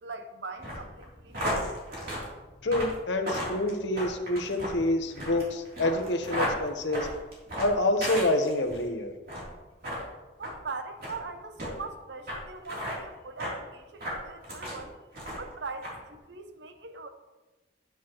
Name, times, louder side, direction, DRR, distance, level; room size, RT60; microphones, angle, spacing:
voice 1, 0.0-1.6 10.4-14.9 15.4-17.1, right 3 dB, 75° right, 8 dB, 0.8 m, -41 dB
sound 1, 0.6-8.8 9.2-9.5 9.8-10.0 10.4-10.6 11.0-11.2 11.6-11.7 12.3-12.4 12.6-13.0 13.4-13.6 14.0-14.8 15.1-15.5 15.8-15.9, equal, 60° right, 3.2 m, -34 dB
voice 2, 2.6-7.1 7.6-9.1, left 1 dB, 75° left, 5 dB, 1.0 m, -27 dB
9.6 x 8.2 x 3.1 m, 1.1 s
head